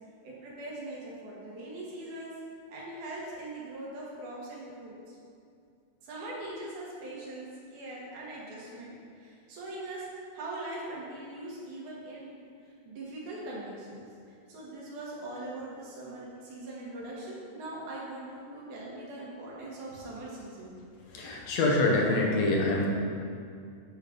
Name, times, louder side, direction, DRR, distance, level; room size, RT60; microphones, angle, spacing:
voice 1, 0.2-2.3 2.7-5.2 6.0-12.4 12.9-14.0 14.3-20.7, right 1 dB, 90° right, -5 dB, 2.9 m, -41 dB
voice 2, 21.1-22.9, left 2 dB, 70° left, -1 dB, 2.0 m, -25 dB
8.4 x 3.8 x 5.0 m, 2.3 s
omnidirectional pair, 3.3 m